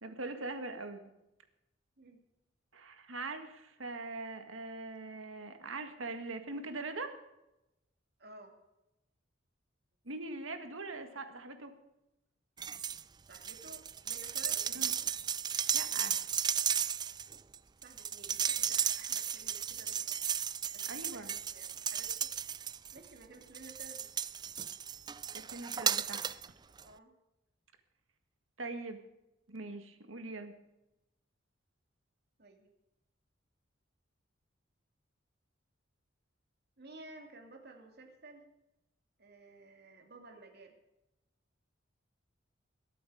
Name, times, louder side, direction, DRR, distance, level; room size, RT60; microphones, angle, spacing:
voice 1, 0.0-1.0 2.7-7.1 10.1-11.7 14.7-14.9 15.7-16.2 20.9-21.3 25.3-26.4 28.6-29.0 29.5-30.5, right 3 dB, 90° right, 7 dB, 1.8 m, -42 dB
voice 2, 8.2-8.5 13.3-14.7 15.8-16.2 17.8-20.0 20.7-22.3 22.9-24.1 26.8-27.1 32.4-32.7 36.8-38.4 39.2-40.7, right 3 dB, 55° right, 3 dB, 2.6 m, -54 dB
sound 1, 12.6-13.0 13.3-23.1 23.5-26.5 26.8-26.9, right 8 dB, 20° right, 0.4 m, -35 dB
21.5 x 8.6 x 4.9 m, 0.92 s
head